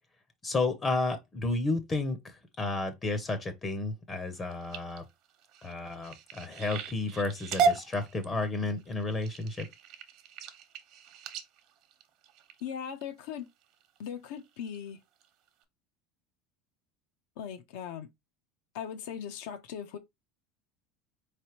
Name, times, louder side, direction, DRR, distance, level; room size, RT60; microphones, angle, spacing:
voice 1, 0.4-5.0 5.6-9.7, left 3 dB, 20° left, 0.7 m, -32 dB
sound 1, 4.3-13.0 13.6-14.0 14.4-14.8 15.2-15.3 15.6-15.7, right 5 dB, 55° right, 0.9 m, -35 dB
voice 2, 12.6-13.5 14.0-15.0 17.4-18.1 18.7-20.0, left 8 dB, 80° left, 0.7 m, -39 dB
4.3 x 3.2 x 2.9 m
supercardioid pair, 145°, 0 cm